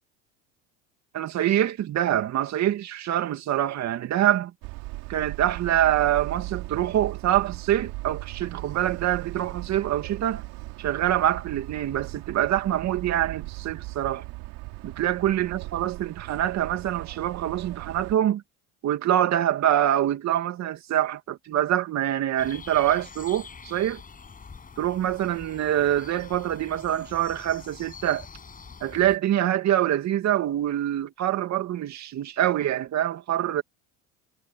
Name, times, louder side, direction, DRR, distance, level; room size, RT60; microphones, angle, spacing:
voice 1, 1.1-4.5 5.1-10.4 10.8-14.2 14.8-18.4 18.8-24.0 24.8-28.2 28.8-33.6, right 12 dB, 45° right, 2.5 m, -25 dB
sound 1, 4.6-18.2, right 22 dB, 70° right, 2.7 m, -38 dB
sound 2, 22.4-29.2, left 5 dB, 20° left, 6.3 m, -45 dB
supercardioid pair, 110°, 37 cm